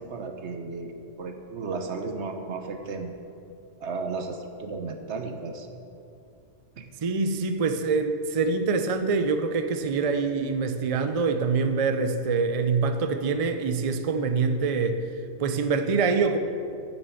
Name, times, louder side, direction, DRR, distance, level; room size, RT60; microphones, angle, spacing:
voice 1, 0.0-3.1 3.8-5.7 6.8-6.9, right 4 dB, 65° right, 5 dB, 1.2 m, -34 dB
voice 2, 7.0-15.0 15.4-16.4, right 4 dB, 45° right, 8 dB, 0.5 m, -25 dB
10.5 x 6.9 x 6.9 m, 2.6 s
omnidirectional pair, 1.3 m